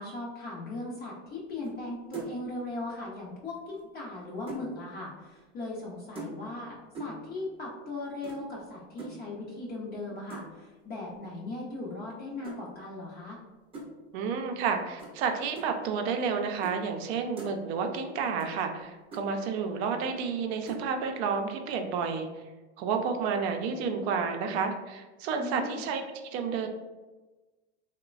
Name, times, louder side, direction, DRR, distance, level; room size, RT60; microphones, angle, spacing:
voice 1, 0.0-13.4 25.4-25.8, left 2 dB, 30° left, -4 dB, 0.5 m, -38 dB
sound 1, 1.6-1.9 2.1-2.5 3.7-4.7 6.2-6.6 6.9-7.3 8.2-8.4 9.0-9.2 10.3-10.6 12.4-12.6 13.7-13.9 15.0-15.2 15.6-15.7 16.6-16.8 17.1-17.5 18.4-18.5 18.8-18.9 19.1-19.3 20.7-20.9, right 2 dB, 15° right, 0.6 m, -41 dB
voice 2, 14.1-22.3 22.8-26.7, right 5 dB, 70° right, 5 dB, 0.5 m, -30 dB
2.9 x 2.1 x 2.3 m, 1.2 s
supercardioid pair, 110°, 33 cm